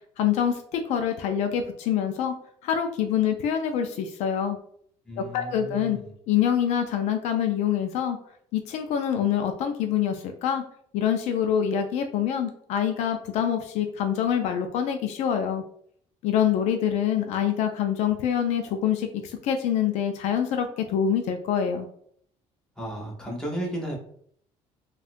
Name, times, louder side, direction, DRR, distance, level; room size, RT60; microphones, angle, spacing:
voice 1, 0.2-2.3 2.6-4.6 5.2-6.0 6.3-8.2 8.5-10.6 10.9-15.6 16.2-21.9, left 9 dB, 65° left, 6 dB, 0.4 m, -25 dB
voice 2, 5.1-6.1 22.8-24.0, right 1 dB, 5° left, -3 dB, 0.8 m, -34 dB
3.5 x 2.3 x 2.5 m, 0.64 s
cardioid pair, 160°, 12 cm